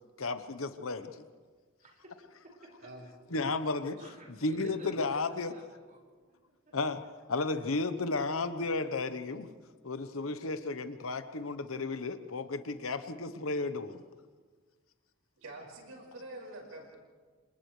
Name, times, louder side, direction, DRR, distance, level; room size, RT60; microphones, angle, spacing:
voice 1, 0.2-1.2 3.3-4.0 4.4-5.5 6.7-7.0 7.3-9.5 9.8-14.0, left 3 dB, 80° left, 10 dB, 1.1 m, -33 dB
voice 2, 1.8-2.9 4.0-5.1 5.5-6.0 6.3-6.4 6.7-6.9, right 1 dB, 40° right, -1 dB, 5.6 m, -55 dB
voice 3, 15.4-17.0, right 1 dB, 85° right, -1 dB, 5.5 m, -46 dB
29.5 x 26.5 x 3.3 m, 1.5 s
head